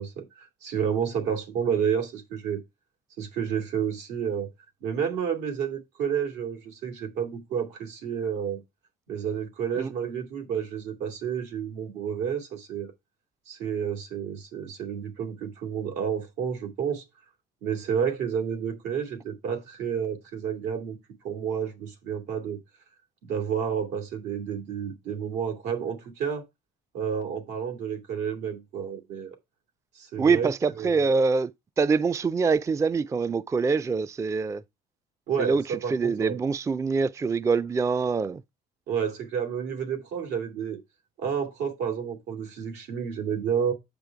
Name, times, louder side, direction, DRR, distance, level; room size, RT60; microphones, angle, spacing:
voice 1, 0.0-2.6 3.2-4.5 4.8-8.6 9.1-12.9 13.5-17.0 17.6-21.0 21.2-22.6 23.2-26.4 26.9-29.3 29.9-30.5 30.8-31.0 35.3-36.4 38.9-40.8 41.2-43.7, right 7 dB, 85° right, 2.6 m, -30 dB
voice 2, 30.2-31.5 31.8-34.6 35.4-38.4, right 4 dB, 20° right, 0.4 m, -24 dB
7.9 x 5.2 x 4.6 m
cardioid pair, 110°, 17 cm